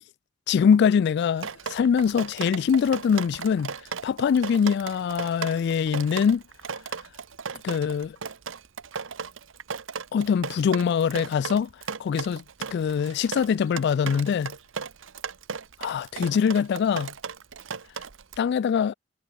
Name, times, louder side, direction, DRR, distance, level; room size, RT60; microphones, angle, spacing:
voice 1, 0.5-3.8 4.0-6.4 7.6-8.2 10.1-11.7 12.0-12.4 12.7-14.5 15.8-17.1 18.4-18.9, left 7 dB, 60° left, 0.3 m, -23 dB
Drip, 1.4-18.4, right 5 dB, 75° right, 1.1 m, -36 dB
head